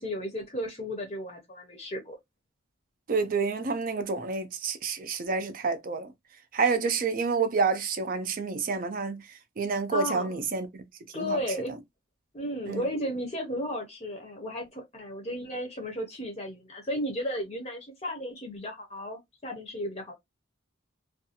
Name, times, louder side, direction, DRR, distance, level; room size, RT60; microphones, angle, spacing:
voice 1, 0.0-2.2 9.9-10.4 11.1-11.7 12.3-20.1, equal, 30° left, 0.6 m, -34 dB
voice 2, 3.1-6.1 6.5-9.2 9.6-10.8 11.1-11.4 12.7-12.8, right 4 dB, 40° right, 0.4 m, -28 dB
2.4 x 2.3 x 2.7 m
head